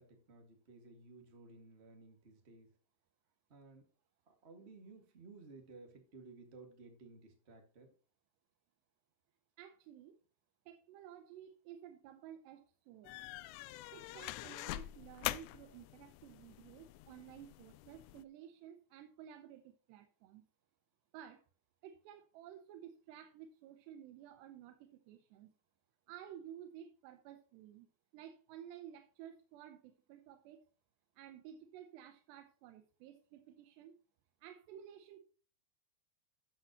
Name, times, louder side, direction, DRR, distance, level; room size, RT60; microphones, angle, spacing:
voice 1, 0.0-2.8 3.5-3.8 4.3-7.9, right 3 dB, 50° right, 3 dB, 0.7 m, -57 dB
voice 2, 9.6-10.2 10.7-13.1 13.9-20.4 21.1-21.4 21.8-25.5 26.1-27.9 28.1-30.7 31.2-33.9 34.4-35.2, right 10 dB, 80° right, 7 dB, 3.0 m, -54 dB
sound 1, 13.0-18.2, left 17 dB, 85° left, 2.7 m, -45 dB
13.5 x 7.8 x 3.0 m, 0.38 s
omnidirectional pair, 5.0 m